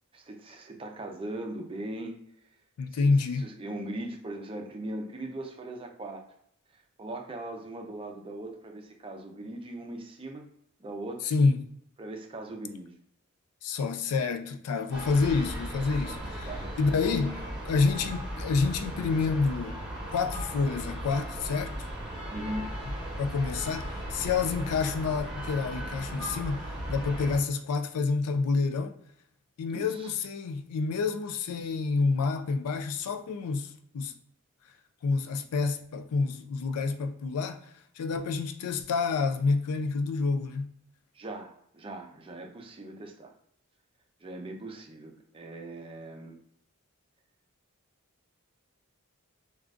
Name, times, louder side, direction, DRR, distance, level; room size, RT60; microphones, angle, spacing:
voice 1, 0.1-2.2 3.0-6.2 6.7-10.5 10.8-11.3 12.0-12.9 16.4-16.7 22.3-22.7 29.7-30.1 41.1-43.3 44.2-46.4, right 1 dB, 25° right, 0.5 m, -39 dB
voice 2, 2.8-3.5 11.2-11.7 13.6-16.5 16.8-21.9 23.2-29.0 29.6-34.1 35.0-37.6 38.0-40.7, left 4 dB, 90° left, 0.4 m, -28 dB
sound 1, 14.9-27.4, equal, 5° right, 1.3 m, -37 dB
3.7 x 2.3 x 2.3 m
head